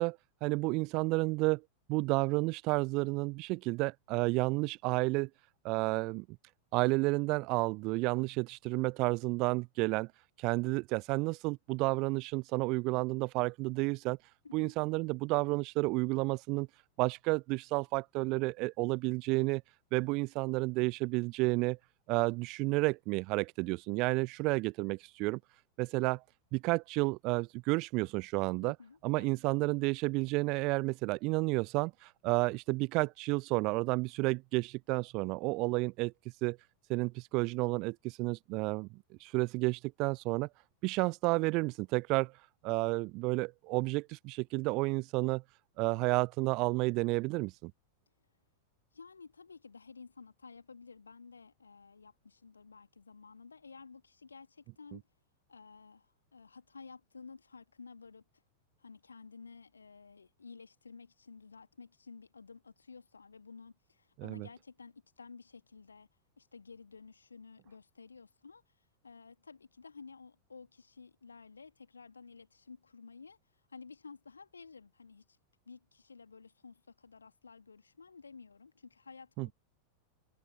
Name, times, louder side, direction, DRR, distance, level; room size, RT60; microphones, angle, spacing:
voice 1, 0.0-1.6 1.9-5.3 5.6-6.2 6.7-10.1 10.4-14.2 14.5-16.7 17.0-19.6 19.9-21.8 22.1-25.4 25.8-26.2 26.5-28.7 29.0-36.1 36.4-36.6 36.9-38.9 39.2-40.5 40.8-42.3 42.6-45.4 45.8-47.7 64.2-64.5 79.4-79.5, right 25 dB, 40° right, 0.3 m, -31 dB
voice 2, 28.6-29.4 48.9-55.0 55.5-58.2 58.8-66.1 66.4-68.6 69.0-73.4 73.7-75.4 75.7-79.5, left 5 dB, 75° left, 2.4 m, -53 dB
figure-of-eight pair, 90°, 0 cm